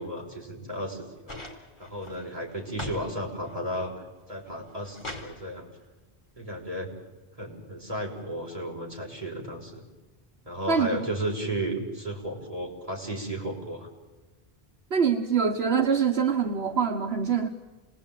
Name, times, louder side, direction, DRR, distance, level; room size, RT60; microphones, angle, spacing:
voice 1, 0.0-1.4 1.8-3.9 4.3-5.7 6.4-6.9 7.4-9.8 10.5-13.9, right 1 dB, 35° right, -1 dB, 5.8 m, -34 dB
sound 1, 1.3-3.1 3.4-4.0 4.5-5.3 6.5-6.6, left 1 dB, 50° left, 4.3 m, -40 dB
voice 2, 10.7-11.0 14.9-17.5, right 6 dB, 75° right, 5 dB, 1.5 m, -24 dB
28.0 x 20.0 x 9.1 m, 1.3 s
omnidirectional pair, 1.1 m